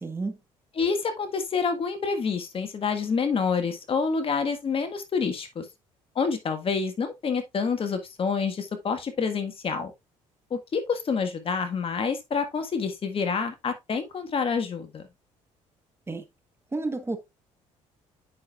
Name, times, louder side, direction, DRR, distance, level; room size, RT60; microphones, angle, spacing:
voice 1, 0.0-0.4 16.1-16.2 16.7-17.2, right 3 dB, 20° right, 1.3 m, -30 dB
voice 2, 0.7-5.7 6.1-9.9 10.5-15.1, left 5 dB, 45° left, 1.6 m, -28 dB
8.5 x 6.1 x 2.4 m
supercardioid pair, 85°, 13 cm